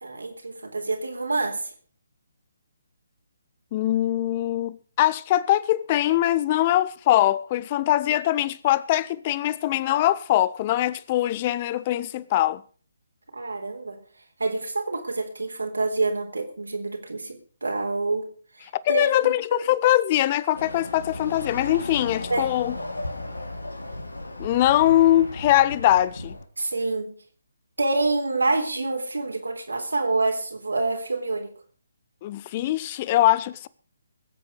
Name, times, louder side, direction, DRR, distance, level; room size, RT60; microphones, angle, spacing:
voice 1, 0.0-1.7 13.3-14.0 14.4-18.3 18.6-19.6 22.3-22.5 26.6-27.1 27.8-31.5, right 3 dB, 80° right, 3.6 m, -27 dB
voice 2, 3.7-12.6 18.8-22.8 24.4-26.4 32.2-33.7, left 14 dB, 30° left, 0.7 m, -22 dB
Chatter / Car passing by / Motorcycle, 20.5-26.4, left 2 dB, 85° left, 2.2 m, -35 dB
21.5 x 8.1 x 5.1 m
figure-of-eight pair, 145°, 0 cm